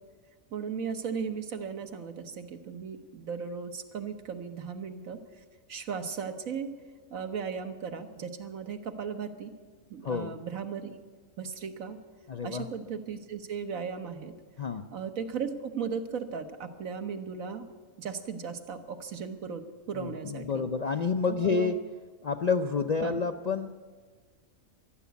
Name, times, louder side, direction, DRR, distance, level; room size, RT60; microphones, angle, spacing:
voice 1, 0.5-6.7 7.1-9.5 9.9-10.9 11.4-12.0 12.4-14.3 14.9-17.7 18.0-20.6 21.4-21.7 23.0-23.2, right 6 dB, 85° right, 7 dB, 1.5 m, -36 dB
voice 2, 10.0-10.3 12.3-12.7 14.6-14.9 19.9-21.8 22.2-23.7, left 5 dB, 60° left, 6 dB, 0.4 m, -29 dB
14.5 x 11.5 x 8.3 m, 1.5 s
omnidirectional pair, 1.4 m